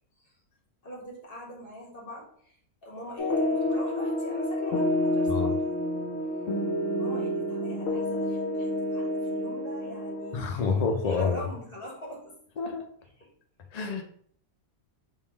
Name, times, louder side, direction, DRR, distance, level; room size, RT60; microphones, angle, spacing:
voice 1, 0.8-5.8 6.3-6.5 7.0-12.4 13.0-13.3, equal, 40° left, -3 dB, 1.5 m, -43 dB
sound 1, 3.2-10.4, left 1 dB, 65° left, 1.1 m, -28 dB
voice 2, 10.3-11.4 12.6-12.8 13.7-14.0, left 5 dB, 80° left, 3 dB, 0.3 m, -27 dB
3.7 x 2.5 x 4.5 m, 0.62 s
omnidirectional pair, 1.5 m